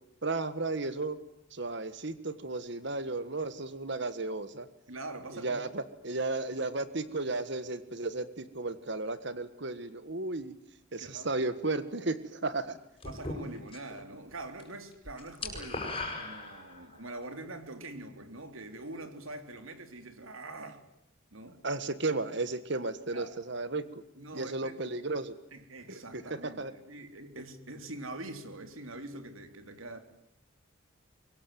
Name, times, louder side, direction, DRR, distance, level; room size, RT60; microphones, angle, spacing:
voice 1, 0.2-1.2 1.5-4.7 5.3-10.5 10.9-12.8 21.6-23.8 24.3-25.3 25.9-26.7, right 2 dB, 60° right, 1.6 m, -34 dB
voice 2, 4.9-5.6 11.0-11.4 13.0-20.8 21.3-21.6 23.1-23.3 24.2-24.8 25.5-30.0, right 2 dB, 85° right, 3.6 m, -44 dB
sound 1, 13.0-14.0 14.3-14.7 14.9-17.0, left 3 dB, 25° left, 7.5 m, -38 dB
24.0 x 23.0 x 9.4 m
head